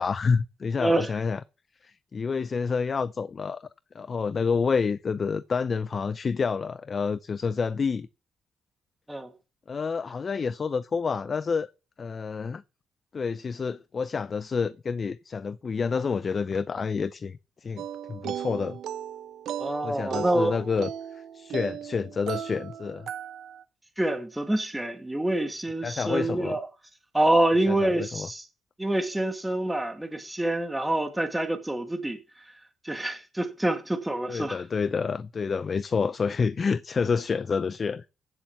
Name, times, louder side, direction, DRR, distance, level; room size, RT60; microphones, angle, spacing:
voice 1, 0.0-1.4 1.8-3.6 3.9-8.1 9.7-11.7 12.0-12.6 13.1-18.8 19.8-23.1 25.8-26.6 27.7-28.3 34.3-38.0, left 5 dB, 40° left, 0.7 m, -28 dB
sound 1, 17.8-23.6, right 9 dB, 70° right, 1.0 m, -36 dB
voice 2, 19.6-20.6 24.0-26.7 27.1-28.4 28.8-32.2 32.8-34.6, right 1 dB, 10° right, 2.2 m, -26 dB
15.5 x 7.0 x 7.2 m
cardioid pair, 90°, 0 cm